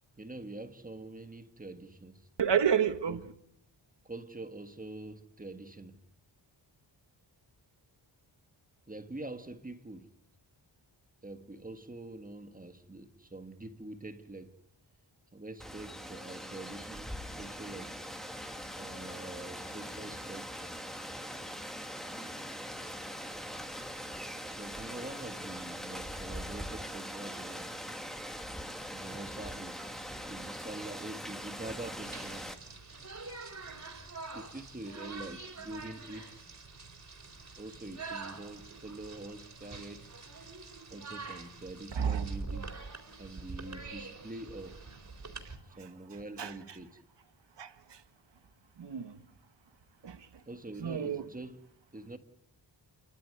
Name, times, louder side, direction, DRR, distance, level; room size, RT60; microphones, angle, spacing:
voice 1, 0.1-2.3 3.1-3.2 4.0-6.0 8.9-10.1 11.2-14.6 15.3-18.0 18.7-20.8 24.6-27.8 28.9-32.7 34.3-36.4 37.6-40.1 40.9-42.7 43.2-44.8 45.6-47.0 50.5-52.2, right 2 dB, 15° right, 1.6 m, -45 dB
voice 2, 2.4-3.2 41.9-42.3 46.4-46.5 47.6-47.7 48.8-49.1 50.0-50.2 50.8-51.2, right 8 dB, 60° right, 1.7 m, -29 dB
Rain, 15.6-32.5, equal, ahead, 1.9 m, -42 dB
sound 1, 32.0-45.6, right 4 dB, 35° right, 4.0 m, -45 dB
28.5 x 14.5 x 9.5 m
wide cardioid pair, 150°, 47 cm